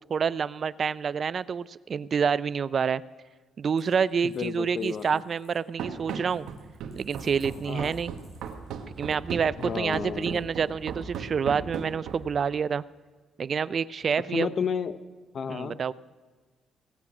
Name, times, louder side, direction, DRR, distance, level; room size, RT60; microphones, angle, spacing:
voice 1, 0.1-3.0 3.6-6.5 7.0-8.1 8.9-12.8 13.4-14.5 15.5-15.9, right 6 dB, 50° right, 18 dB, 0.3 m, -28 dB
Coin (dropping), 3.7-9.1 10.1-10.9, left 1 dB, 30° left, 5.4 m, -62 dB
voice 2, 4.2-5.2 7.6-7.9 9.6-10.4 14.3-15.0 15.3-15.8, left 6 dB, 55° left, 13 dB, 0.7 m, -32 dB
Run, 5.8-12.4, right 7 dB, 80° right, 1.2 m, -36 dB
17.0 x 8.5 x 6.0 m, 1.4 s
cardioid pair, 90°, 0 cm